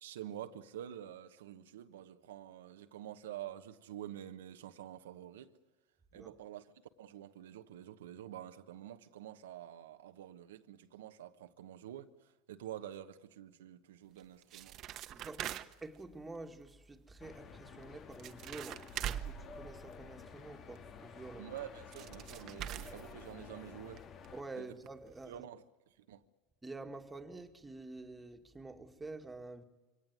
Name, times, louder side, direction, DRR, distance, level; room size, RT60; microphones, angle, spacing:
voice 1, 0.0-5.5 6.1-6.6 7.0-12.1 12.5-14.8 21.4-24.0 24.5-24.7 25.2-25.6 26.1-26.2, right 11 dB, 85° right, 1.1 m, -48 dB
sound 1, 14.2-16.0 17.8-17.9 18.1-20.3 21.6-21.7 21.9-23.6 24.0-24.1 24.2-24.3 24.9-25.0 25.2-25.3, right 12 dB, 50° right, 1.1 m, -43 dB
voice 2, 15.1-21.5 24.3-25.4 26.6-29.6, right 2 dB, 15° right, 2.0 m, -48 dB
sound 2, 17.2-24.4, left 6 dB, 45° left, 1.8 m, -52 dB
23.5 x 18.0 x 9.5 m
hypercardioid pair, 95°, 0 cm